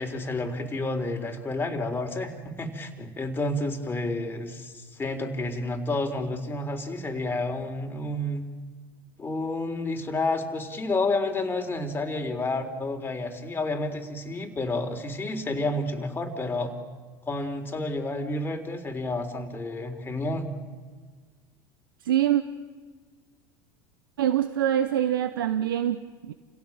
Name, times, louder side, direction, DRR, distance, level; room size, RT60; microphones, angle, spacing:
voice 1, 0.0-8.4 9.2-16.7 17.3-20.5, left 2 dB, 20° left, 4 dB, 3.9 m, -30 dB
voice 2, 22.0-22.4 24.2-26.3, right 11 dB, 80° right, 12 dB, 1.0 m, -24 dB
29.5 x 16.5 x 8.9 m, 1.5 s
hypercardioid pair, 85°, 11 cm